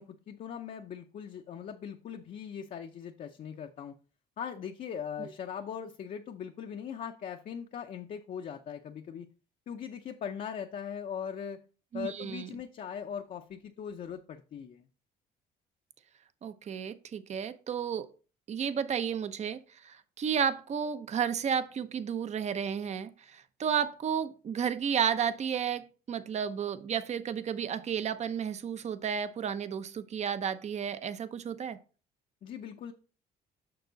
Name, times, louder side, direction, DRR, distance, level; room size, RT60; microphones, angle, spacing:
voice 1, 0.0-3.9 4.4-9.3 9.7-11.6 11.9-14.9 32.4-32.9, left 8 dB, 50° left, 0.7 m, -40 dB
voice 2, 11.9-12.5 16.4-18.1 18.5-31.8, right 8 dB, 40° right, 0.8 m, -32 dB
6.8 x 6.0 x 3.9 m
cardioid pair, 110°, 17 cm